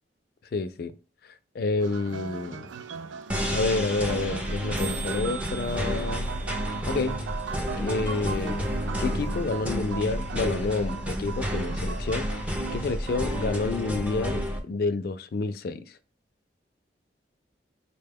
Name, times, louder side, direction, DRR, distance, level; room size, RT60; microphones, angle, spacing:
voice 1, 0.5-0.9 1.5-2.7 3.5-6.3 6.9-7.1 7.8-8.6 9.0-12.3 12.7-15.8, left 3 dB, 55° left, 0.3 m, -29 dB
sound 1, 1.8-13.6, right 6 dB, 90° right, 0.4 m, -39 dB
sound 2, 2.7-2.8 3.0-3.1 3.2-3.5 3.7-3.8 4.0-4.2 4.5-4.6 4.8-8.7, right 6 dB, 50° right, 0.8 m, -44 dB
sound 3, 3.3-14.6, equal, 10° right, 0.4 m, -30 dB
4.2 x 2.2 x 3.3 m
head